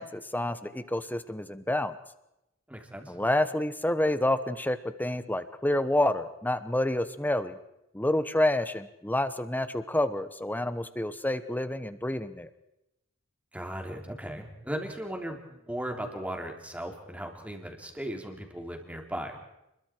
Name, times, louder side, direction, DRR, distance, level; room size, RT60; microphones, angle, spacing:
voice 1, 0.0-2.0 3.1-7.6 7.9-12.5, left 1 dB, 10° left, 12 dB, 1.1 m, -28 dB
voice 2, 2.7-3.1 13.5-19.4, right 1 dB, 5° right, 2 dB, 3.2 m, -37 dB
29.5 x 22.0 x 4.6 m, 0.87 s
head